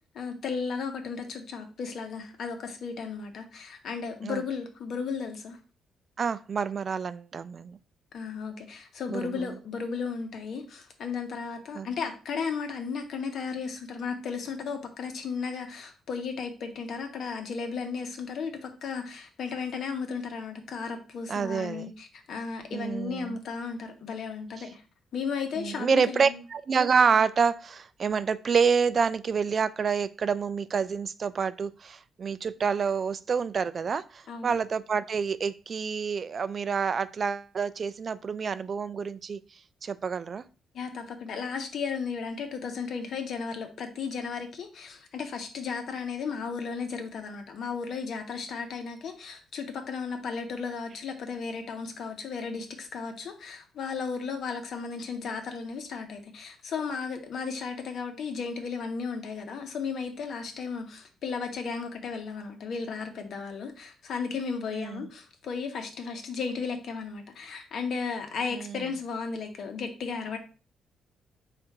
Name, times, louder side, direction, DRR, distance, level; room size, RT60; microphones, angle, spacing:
voice 1, 0.1-5.6 8.1-24.8 25.1-26.4 34.3-34.6 40.7-70.4, left 5 dB, 65° left, 1.0 m, -35 dB
voice 2, 6.2-7.8 9.1-9.5 11.8-11.9 21.3-21.9 22.7-23.4 25.6-39.4 39.8-40.4 64.7-65.1 68.5-68.8, right 6 dB, 45° right, 0.3 m, -28 dB
4.4 x 2.5 x 4.4 m
cardioid pair, 90°, 0 cm